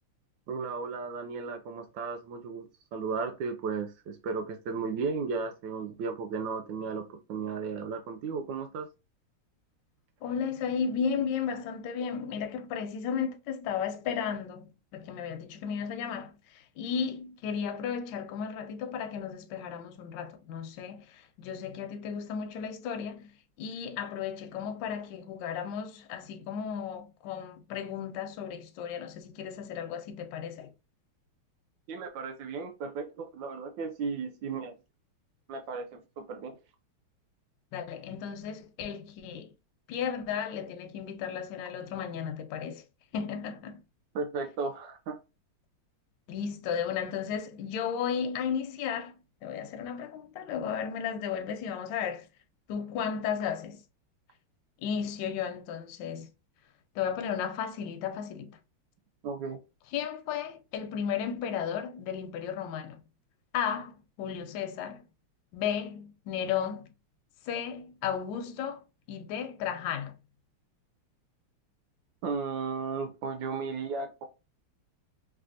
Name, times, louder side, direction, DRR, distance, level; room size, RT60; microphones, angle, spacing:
voice 1, 0.5-8.9 31.9-34.7 35.5-36.6 44.1-45.2 59.2-59.6 72.2-74.3, right 5 dB, 75° right, 1.1 m, -35 dB
voice 2, 10.2-23.3 23.6-30.7 37.7-39.5 39.9-42.8 43.1-43.8 46.3-49.1 49.4-52.3 52.7-53.8 54.8-56.3 56.9-58.6 59.9-63.0 63.5-65.0 65.5-66.9 67.5-68.8 69.1-70.2, left 7 dB, 75° left, 1.1 m, -34 dB
3.3 x 2.4 x 2.5 m
omnidirectional pair, 2.4 m